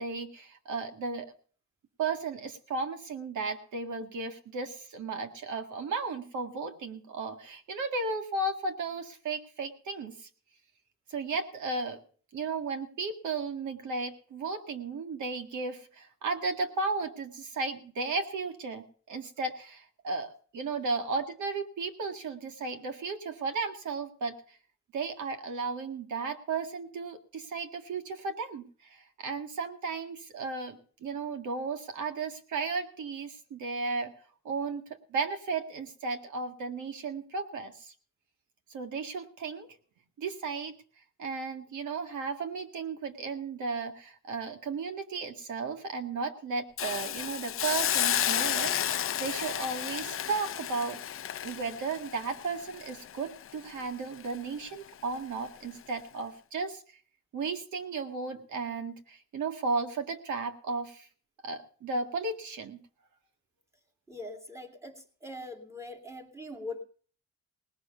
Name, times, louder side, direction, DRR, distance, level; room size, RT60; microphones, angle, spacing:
voice 1, 0.0-1.3 2.0-10.3 11.1-12.0 12.3-24.6 24.9-34.1 34.4-34.8 35.1-37.9 38.7-39.7 40.2-40.7 41.2-51.0 51.4-56.8 57.3-61.1 61.4-62.8, right 4 dB, 75° right, 6 dB, 1.9 m, -34 dB
Hiss, 46.8-53.8 54.2-54.4, left 10 dB, 45° left, 0.6 m, -32 dB
voice 2, 64.1-66.8, left 2 dB, 10° right, 4 dB, 2.2 m, -42 dB
19.0 x 6.7 x 6.8 m, 0.43 s
cardioid pair, 125°, 30 cm